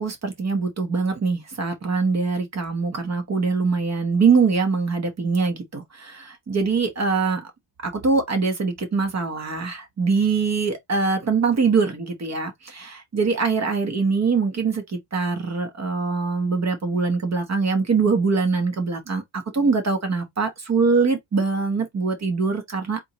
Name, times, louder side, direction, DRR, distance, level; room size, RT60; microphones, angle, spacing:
voice 1, 0.0-7.5 7.8-23.0, right 4 dB, 35° right, 1.0 m, -23 dB
4.1 x 3.5 x 3.0 m
wide cardioid pair, 165°, 49 cm